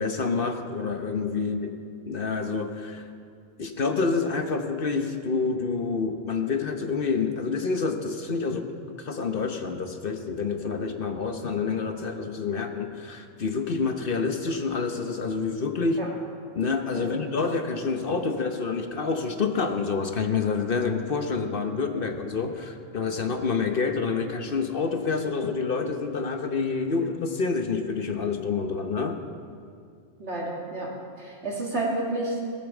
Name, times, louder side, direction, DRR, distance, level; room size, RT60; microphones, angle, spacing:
voice 1, 0.0-1.7 2.0-3.0 3.6-8.7 9.0-16.0 16.5-29.2, left 4 dB, 55° left, 6 dB, 1.1 m, -28 dB
voice 2, 30.2-30.9 31.2-32.4, right 2 dB, 75° right, -2 dB, 2.7 m, -31 dB
17.5 x 8.7 x 7.2 m, 2.3 s
omnidirectional pair, 1.2 m